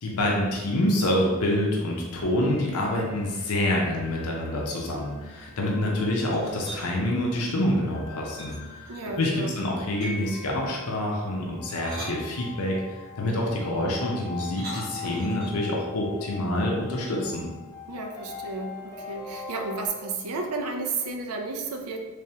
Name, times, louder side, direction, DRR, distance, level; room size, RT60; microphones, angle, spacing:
voice 1, 0.0-8.9 9.2-12.8 13.2-17.5, left 1 dB, 80° left, -1 dB, 0.7 m, -27 dB
sound 1, 2.5-19.9, left 6 dB, 15° left, 0.4 m, -44 dB
sound 2, 6.3-6.9 8.4-9.3 10.0-10.4 11.5-12.9 14.4-15.7, right 1 dB, 45° right, 1.4 m, -41 dB
voice 2, 8.9-9.5 17.9-22.0, right 3 dB, 85° right, 2 dB, 0.5 m, -32 dB
Piano, 10.0-11.1, equal, 10° right, 0.7 m, -41 dB
3.4 x 3.4 x 2.8 m, 1.3 s
head